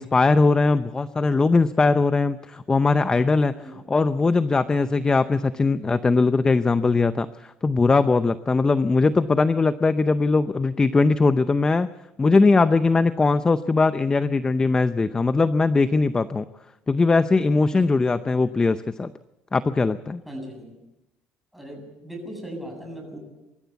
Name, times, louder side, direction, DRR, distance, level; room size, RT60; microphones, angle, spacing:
voice 1, 0.0-3.5 3.9-11.9 12.2-16.4 16.9-19.1 19.5-20.2, left 3 dB, 20° left, 13 dB, 0.6 m, -20 dB
voice 2, 20.2-20.8 21.5-23.2, equal, ahead, 1 dB, 7.9 m, -38 dB
24.5 x 13.5 x 8.2 m, 0.96 s
cardioid pair, 115°, 4 cm